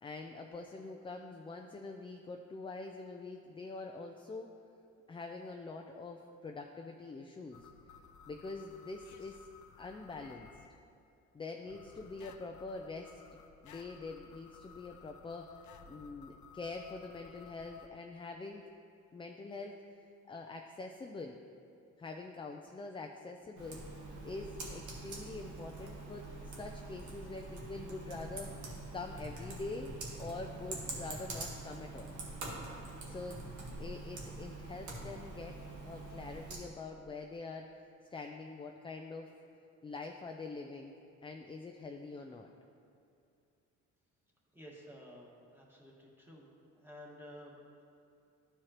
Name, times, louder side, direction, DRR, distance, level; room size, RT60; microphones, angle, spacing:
voice 1, 0.0-4.5 5.1-7.7 8.3-9.5 9.8-10.5 11.3-13.2 13.6-18.7 19.1-21.4 22.0-23.9 24.2-32.2 33.1-33.5 33.8-35.6 35.8-39.3 39.8-40.9 41.2-42.5, left 3 dB, 15° left, 3 dB, 0.4 m, -45 dB
sound 1, 7.5-10.7 11.7-17.9, left 6 dB, 75° left, 0.6 m, -57 dB
Computer keyboard, 23.6-36.6, right 2 dB, 70° right, 1.5 m, -45 dB
voice 2, 44.5-46.5 46.7-47.8, equal, 5° right, -3 dB, 1.6 m, -52 dB
12.5 x 4.7 x 3.0 m, 2.5 s
cardioid pair, 90°, 30 cm